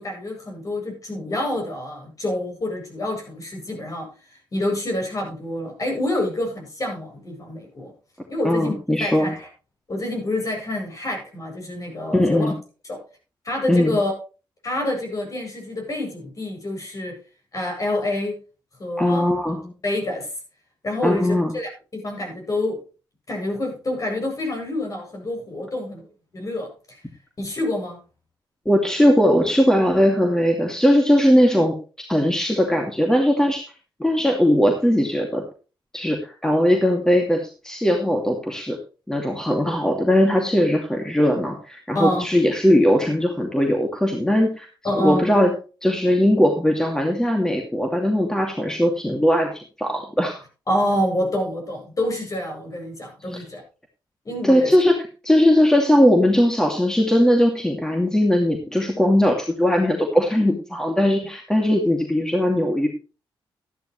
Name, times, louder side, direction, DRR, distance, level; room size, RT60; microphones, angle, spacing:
voice 1, 0.0-4.1 4.5-7.9 8.3-9.5 9.9-12.5 12.9-13.0 13.4-14.1 14.6-17.2 17.5-18.4 18.8-19.3 19.8-20.3 20.8-22.8 23.3-26.1 26.3-26.7 27.4-28.0 41.9-42.3 44.8-45.3 50.7-53.6 54.2-54.7, left 1 dB, 40° left, 2 dB, 8.0 m, -27 dB
voice 2, 8.4-9.3 12.1-12.5 13.7-14.0 19.0-19.7 21.0-21.5 28.7-31.7 32.1-33.6 34.0-35.4 35.9-38.8 39.1-44.7 45.0-45.5 45.8-50.4 53.3-53.4 54.4-62.9, equal, 5° left, 2 dB, 2.5 m, -19 dB
13.5 x 11.0 x 3.3 m, 0.34 s
cardioid pair, 85°, 9 cm